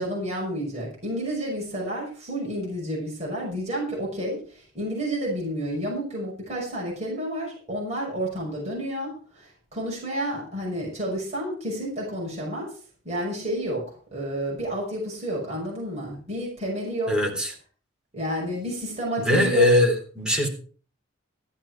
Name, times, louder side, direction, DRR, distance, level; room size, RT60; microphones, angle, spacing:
voice 1, 0.0-12.7 13.0-17.2 18.1-19.7, right 1 dB, 35° right, -4 dB, 6.0 m, -30 dB
voice 2, 17.1-17.5 19.2-20.5, left 1 dB, 5° right, 0 dB, 3.5 m, -21 dB
14.0 x 10.5 x 4.6 m, 0.39 s
head